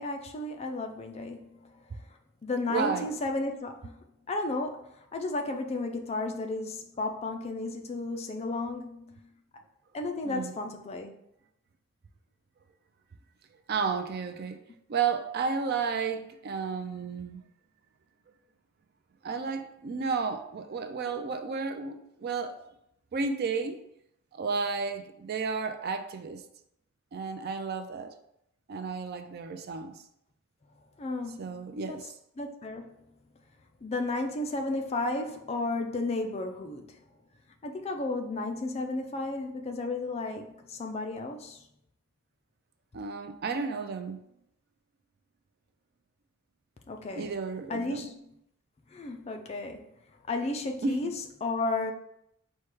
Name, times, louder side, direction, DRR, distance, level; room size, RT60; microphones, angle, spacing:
voice 1, 0.0-1.7 2.4-4.0 4.3-9.2 9.9-11.1 31.0-32.0 32.4-32.9 33.8-37.0 37.6-41.7 46.9-47.3 47.7-48.2 48.9-49.9 50.3-51.9, left 2 dB, 30° left, 0.4 m, -33 dB
voice 2, 2.7-3.1 10.2-10.5 13.7-14.6 14.9-17.4 19.2-22.6 23.1-23.8 24.3-26.4 27.1-28.1 28.7-30.0 31.4-32.1 42.9-44.2 47.1-48.1 50.8-51.1, right 5 dB, 50° right, 0.4 m, -32 dB
4.4 x 2.2 x 4.7 m
head